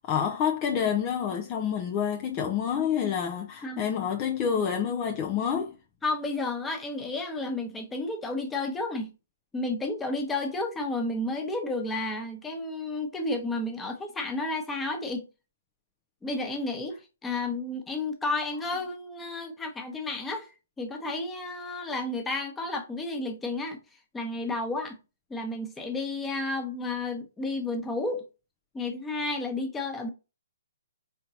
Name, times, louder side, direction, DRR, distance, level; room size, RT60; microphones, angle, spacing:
voice 1, 0.0-5.7, left 8 dB, 30° left, 0.6 m, -28 dB
voice 2, 6.0-9.1 9.5-15.2 16.2-16.9 17.2-23.8 24.1-25.0 25.3-28.2 28.7-30.1, left 2 dB, 10° left, 1.1 m, -32 dB
4.2 x 3.9 x 2.8 m
figure-of-eight pair, 130°, 0 cm